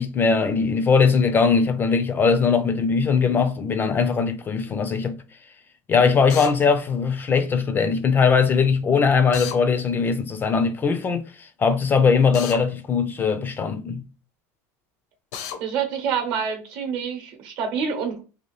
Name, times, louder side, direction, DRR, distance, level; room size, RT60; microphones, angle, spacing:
voice 1, 0.0-5.2 5.9-14.0, left 5 dB, 25° left, 0.3 m, -20 dB
Drill, 6.3-6.5 9.3-9.6 12.3-12.6 15.3-15.6, left 8 dB, 70° left, 0.6 m, -32 dB
voice 2, 15.6-18.3, right 7 dB, 55° right, 0.8 m, -27 dB
2.7 x 2.4 x 3.1 m
supercardioid pair, 120°, 9 cm